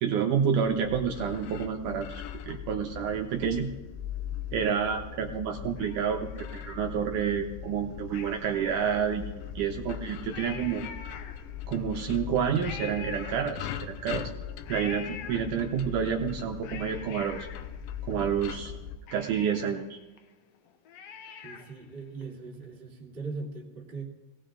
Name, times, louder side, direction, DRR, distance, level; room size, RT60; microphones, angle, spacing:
voice 1, 0.0-3.7 4.5-10.9 11.7-14.3 14.7-17.5 18.0-18.7 19.1-20.0, right 7 dB, 75° right, 4 dB, 2.1 m, -29 dB
sound 1, 0.7-19.0, left 9 dB, 90° left, 2.5 m, -40 dB
Cat, 5.8-7.2 8.1-9.5 9.9-10.0 10.3-11.8 12.6-14.0 14.7-15.9 16.4-18.4 18.7-18.8 19.1-21.9 22.2-22.3, left 7 dB, 70° left, 1.6 m, -45 dB
voice 2, 21.4-24.0, right 4 dB, 20° right, -1 dB, 2.0 m, -40 dB
19.0 x 18.0 x 3.8 m, 1.1 s
omnidirectional pair, 4.0 m